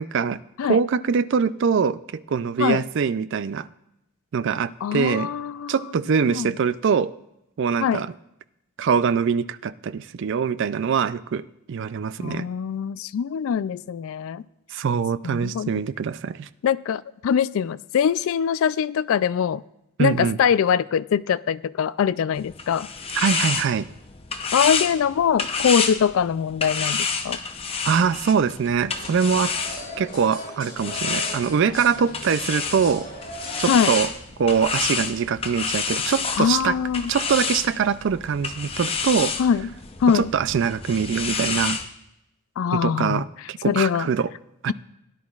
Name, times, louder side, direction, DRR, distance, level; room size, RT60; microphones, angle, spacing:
voice 1, 0.0-3.7 4.3-5.3 5.7-7.1 7.6-8.1 8.8-12.5 14.7-16.5 20.0-20.4 23.1-23.9 27.8-29.5 30.0-33.1 33.6-34.1 34.4-36.8 37.1-39.3 40.1-41.8 42.7-44.3 44.6-44.7, right 6 dB, 55° right, 16 dB, 0.3 m, -23 dB
voice 2, 4.8-5.7 6.2-6.5 7.8-8.0 12.2-14.4 15.2-15.7 16.6-19.6 20.0-22.9 24.5-27.4 33.7-33.9 36.4-37.1 39.4-39.7 40.0-40.3 42.6-43.2 43.6-44.1, left 7 dB, 65° left, 16 dB, 0.3 m, -23 dB
sound 1, 22.3-30.2 30.8-41.8, left 5 dB, 25° left, 0.7 m, -29 dB
sound 2, 28.9-34.0, left 1 dB, 40° left, 4.1 m, -38 dB
17.0 x 10.5 x 2.4 m, 0.85 s
head